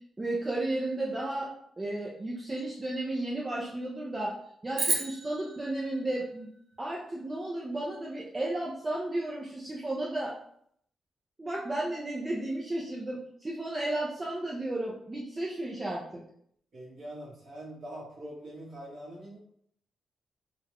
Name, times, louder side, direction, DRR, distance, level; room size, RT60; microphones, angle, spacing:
voice 1, 0.2-1.5 1.8-4.3 4.6-6.5 6.8-10.3 11.4-16.2, right 1 dB, 20° right, -4 dB, 0.5 m, -33 dB
sound 1, 4.7-7.2, right 2 dB, 80° right, 1.2 m, -34 dB
voice 2, 16.7-19.4, right 1 dB, 45° right, -6 dB, 1.4 m, -43 dB
3.8 x 2.2 x 2.9 m, 0.68 s
wide cardioid pair, 135°, 0 cm